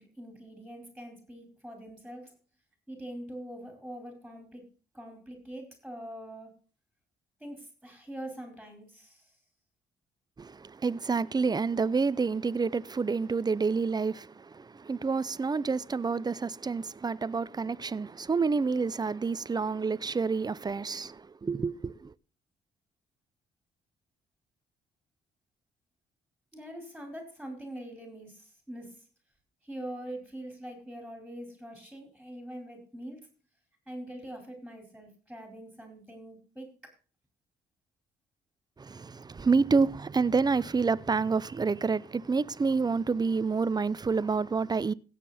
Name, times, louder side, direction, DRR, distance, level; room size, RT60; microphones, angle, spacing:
voice 1, 0.0-2.3 2.9-4.6 4.9-6.5 7.4-9.2 26.5-29.0 29.7-33.2 33.9-36.7, right 1 dB, ahead, 4.5 m, -43 dB
voice 2, 10.4-14.3 14.5-21.2 21.4-21.9 38.8-44.9, right 4 dB, 20° right, 0.5 m, -28 dB
16.5 x 7.5 x 4.2 m
cardioid pair, 90°, 20 cm